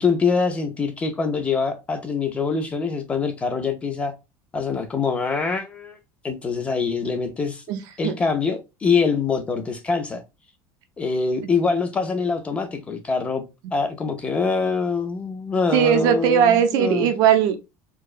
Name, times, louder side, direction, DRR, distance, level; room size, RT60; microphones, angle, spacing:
voice 1, 0.0-4.1 4.5-6.0 6.2-7.6 8.0-10.2 11.0-13.4 13.7-17.1, left 5 dB, 15° left, 0.4 m, -24 dB
voice 2, 7.7-8.1 15.7-17.6, right 8 dB, 55° right, 0.5 m, -19 dB
4.6 x 2.1 x 2.4 m
cardioid pair, 170°, 8 cm